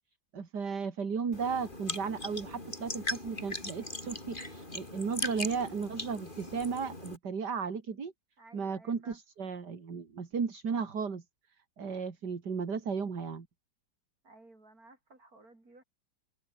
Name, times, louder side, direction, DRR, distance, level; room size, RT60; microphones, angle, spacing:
voice 1, 0.3-8.1 8.5-11.2 11.8-13.5, right 5 dB, 70° right, 3.0 m, -35 dB
sound 1, 1.3-7.2, left 1 dB, 30° left, 5.1 m, -39 dB
voice 2, 8.4-9.2 14.2-15.8, right 2 dB, 55° right, 6.8 m, -56 dB
omnidirectional pair, 1.9 m